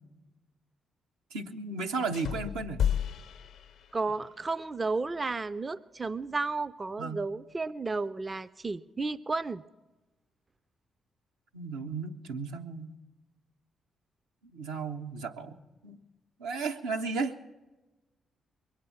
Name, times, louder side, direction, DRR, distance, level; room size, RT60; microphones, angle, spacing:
voice 1, 1.3-2.8 7.0-7.2 11.5-12.9 14.5-16.0 16.4-17.4, right 4 dB, 85° right, 3 dB, 0.7 m, -34 dB
sound 1, 2.1-4.3, left 9 dB, 70° left, 0.6 m, -32 dB
voice 2, 3.9-9.6, right 3 dB, 35° right, 15 dB, 0.4 m, -33 dB
21.5 x 8.8 x 7.0 m, 1.1 s
hypercardioid pair, 45°, 0 cm